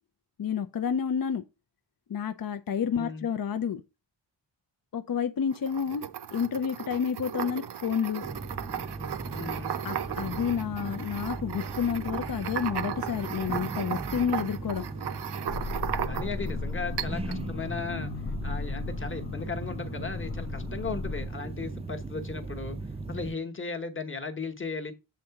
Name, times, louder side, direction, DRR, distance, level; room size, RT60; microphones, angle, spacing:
voice 1, 0.4-1.4 2.1-3.8 4.9-6.0 6.3-8.3 9.8-14.8, left 7 dB, 50° left, 0.5 m, -30 dB
voice 2, 2.9-3.3 9.3-9.7 16.1-18.1 18.4-22.8 23.0-24.9, left 4 dB, 25° left, 1.1 m, -36 dB
sound 1, 5.5-16.5 17.0-17.4, right 9 dB, 60° right, 0.6 m, -36 dB
sound 2, 8.2-23.3, right 3 dB, 15° right, 0.4 m, -38 dB
sound 3, 15.5-21.3, left 4 dB, 85° left, 1.0 m, -36 dB
7.6 x 3.8 x 5.7 m
wide cardioid pair, 140°, 46 cm